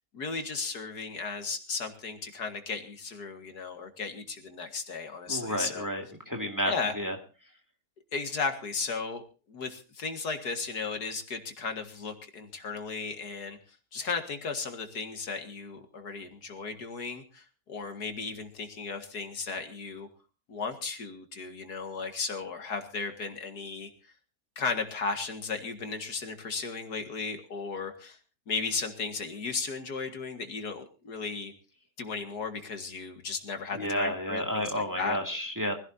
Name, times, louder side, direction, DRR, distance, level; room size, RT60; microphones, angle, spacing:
voice 1, 0.1-5.9 6.6-6.9 8.1-9.2 9.5-13.6 13.9-20.1 20.5-23.9 24.6-28.2 28.5-31.5 32.0-35.2, left 4 dB, 70° left, 6 dB, 2.4 m, -35 dB
voice 2, 5.3-7.2 33.7-35.7, equal, 10° right, 2 dB, 2.1 m, -31 dB
24.5 x 16.5 x 2.7 m, 0.34 s
omnidirectional pair, 1.8 m